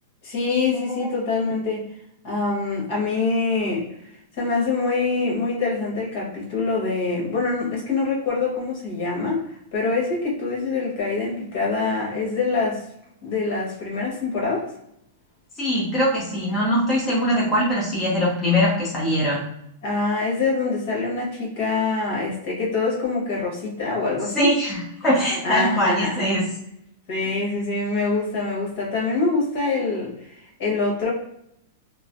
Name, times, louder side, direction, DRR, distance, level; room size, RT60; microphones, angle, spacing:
voice 1, 0.2-1.8 2.2-3.8 4.4-12.8 13.2-14.6 19.8-24.5 25.4-26.3 27.1-31.1, left 3 dB, 50° left, -3 dB, 1.4 m, -25 dB
voice 2, 15.6-19.4 24.3-26.4, equal, 15° left, -6 dB, 0.8 m, -22 dB
3.1 x 2.1 x 2.5 m, 0.77 s
supercardioid pair, 150°, 0 cm